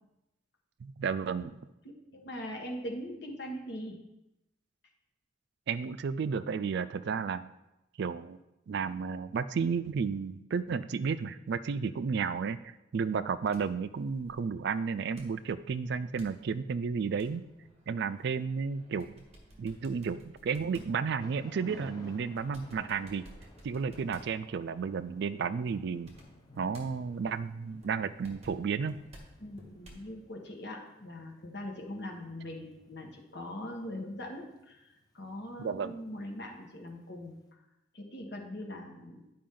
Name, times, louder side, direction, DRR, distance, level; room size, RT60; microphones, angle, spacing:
voice 1, 0.8-1.6 5.7-7.5 8.0-8.4 8.7-17.4 17.9-19.2 19.6-23.2 23.6-26.1 26.6-29.0 35.6-36.0, right 5 dB, 60° right, 14 dB, 0.4 m, -32 dB
voice 2, 1.8-4.0 29.4-37.4 37.9-39.2, left 1 dB, 60° left, 1 dB, 1.6 m, -41 dB
sound 1, 13.1-30.1, right 1 dB, 35° right, 1.6 m, -57 dB
Thunder / Rain, 21.2-37.2, left 1 dB, 20° left, 0.8 m, -56 dB
10.5 x 5.0 x 3.8 m, 0.92 s
head